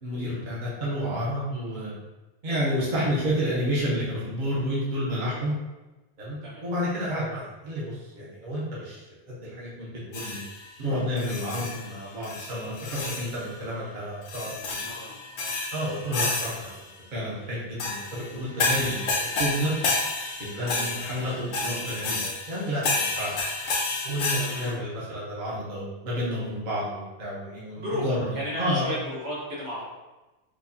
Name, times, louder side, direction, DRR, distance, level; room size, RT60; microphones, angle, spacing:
voice 1, 0.0-1.9 2.4-5.5 6.2-10.4 10.8-14.8 15.7-16.7 17.1-19.7 20.4-23.3 24.0-28.3 28.6-28.9, equal, 45° right, -8 dB, 1.0 m, -30 dB
sound 1, 10.1-10.7 11.2-12.0 12.2-13.4 14.3-16.9 17.8-24.7, left 3 dB, 75° left, 0.9 m, -30 dB
voice 2, 14.8-15.5 24.4-24.6 27.8-28.0 28.3-29.8, left 1 dB, 65° right, -7 dB, 1.4 m, -34 dB
4.9 x 2.3 x 2.6 m, 1.1 s
omnidirectional pair, 1.2 m